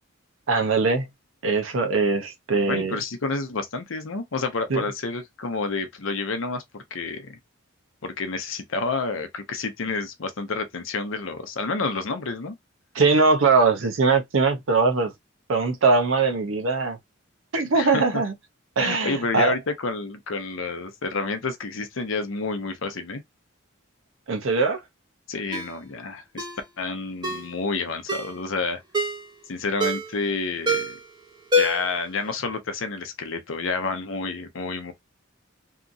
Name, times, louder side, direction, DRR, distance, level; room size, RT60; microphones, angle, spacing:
voice 1, 0.5-1.1 1.4-3.0 4.7-4.9 12.9-15.1 15.5-17.0 17.5-18.3 18.8-19.5 24.3-24.8, right 4 dB, 75° right, 0.7 m, -21 dB
voice 2, 2.7-7.4 8.0-12.5 17.7-18.2 18.8-23.2 25.3-26.5 26.8-28.8 29.5-31.0 31.5-34.9, left 3 dB, 75° left, 0.7 m, -29 dB
Ringtone, 25.5-25.7 26.4-26.6 27.2-27.5 28.1-28.4 28.9-29.2 29.8-30.2 30.7-31.1 31.5-32.0 32.3-32.4, left 1 dB, 20° right, 0.8 m, -25 dB
2.8 x 2.5 x 2.5 m
head